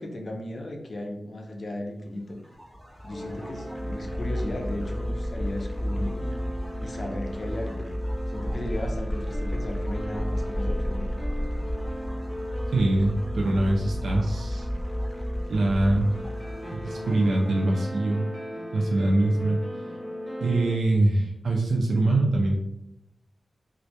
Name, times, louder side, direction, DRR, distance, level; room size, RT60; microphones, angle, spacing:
voice 1, 0.0-2.4 3.0-6.4 6.8-7.9 8.3-11.1, left 1 dB, 45° left, 2 dB, 0.4 m, -35 dB
sound 1, 2.3-18.0, equal, 15° right, 0.5 m, -32 dB
sound 2, 3.1-20.8, equal, 15° left, 0.7 m, -38 dB
voice 2, 12.7-14.7 15.5-16.1 16.7-18.3 18.7-19.6 20.4-22.6, right 2 dB, 80° right, -1 dB, 0.3 m, -23 dB
2.2 x 2.1 x 2.7 m, 0.82 s
wide cardioid pair, 95°, 0 cm